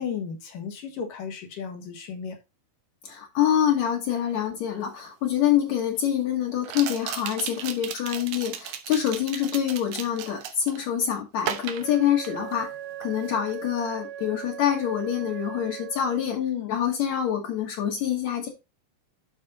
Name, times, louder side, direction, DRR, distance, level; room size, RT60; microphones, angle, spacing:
voice 1, 0.0-2.4 16.3-16.8, left 7 dB, 75° left, 3.3 m, -33 dB
voice 2, 3.0-12.7 13.0-16.4 16.7-18.5, left 10 dB, 60° left, 2.6 m, -26 dB
sound 1, 5.0-5.1 6.6-10.9 11.4-12.7 13.0-13.4, right 10 dB, 85° right, 2.6 m, -35 dB
Wind instrument woodwind instrument, 11.8-16.4, right 10 dB, 70° right, 2.5 m, -39 dB
12.0 x 4.2 x 4.0 m
omnidirectional pair, 3.8 m